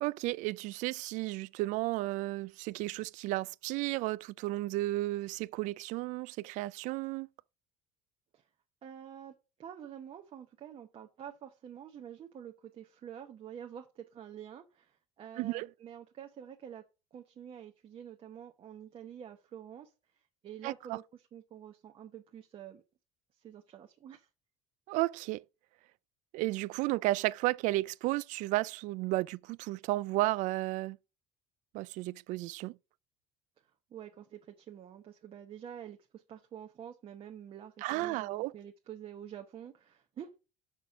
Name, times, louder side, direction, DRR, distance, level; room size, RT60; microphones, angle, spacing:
voice 1, 0.0-7.3 15.4-15.7 20.6-21.0 24.9-25.4 26.3-31.0 31.7-32.7 37.8-38.5, right 19 dB, 70° right, 0.4 m, -33 dB
voice 2, 8.8-9.3 9.6-16.8 17.1-19.9 20.4-22.8 23.4-24.3 33.9-40.4, right 9 dB, 45° right, 0.9 m, -48 dB
6.2 x 5.1 x 5.7 m
cardioid pair, 110°, 13 cm